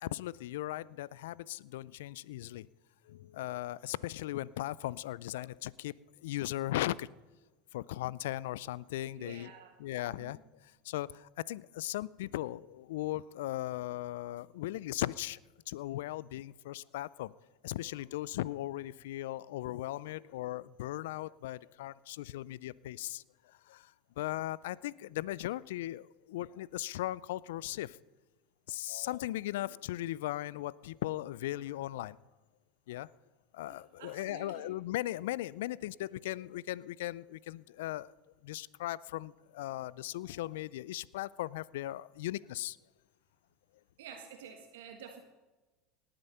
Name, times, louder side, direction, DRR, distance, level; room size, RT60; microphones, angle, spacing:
voice 1, 0.0-2.7 3.1-5.9 6.2-7.1 7.7-9.5 9.8-10.4 10.8-15.4 15.7-17.3 17.6-28.0 28.7-32.2 32.9-33.1 33.5-38.1 38.4-42.8, left 15 dB, 75° left, 22 dB, 0.4 m, -38 dB
voice 2, 9.2-9.8 10.1-10.3 33.7-34.7 44.0-45.2, right 7 dB, 75° right, 4 dB, 1.5 m, -50 dB
18.5 x 8.9 x 5.7 m, 1.2 s
hypercardioid pair, 90°, 0 cm